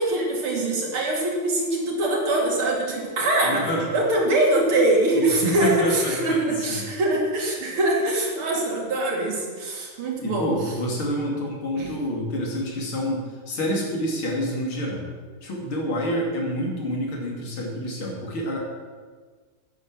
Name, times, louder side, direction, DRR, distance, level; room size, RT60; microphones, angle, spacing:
voice 1, 0.0-10.7 11.8-11.9, right 2 dB, 85° right, -2 dB, 3.5 m, -23 dB
voice 2, 3.4-3.9 5.2-6.8 10.2-15.1 15.4-18.6, equal, 80° left, -1 dB, 3.6 m, -28 dB
11.0 x 9.7 x 7.5 m, 1.5 s
omnidirectional pair, 2.3 m